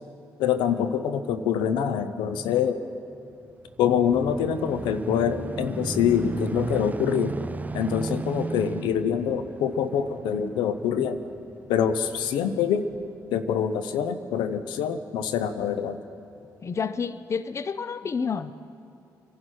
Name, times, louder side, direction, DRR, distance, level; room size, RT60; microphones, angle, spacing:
voice 1, 0.4-2.8 3.8-7.4 7.7-11.2 11.7-12.9 13.3-16.0, left 8 dB, 85° left, 10 dB, 0.7 m, -25 dB
sound 1, 3.5-12.3 12.9-13.0, right 3 dB, 20° right, 0.4 m, -35 dB
voice 2, 16.6-18.5, left 5 dB, 40° left, 15 dB, 0.5 m, -29 dB
24.5 x 11.0 x 4.5 m, 2.9 s
supercardioid pair, 60°, 8 cm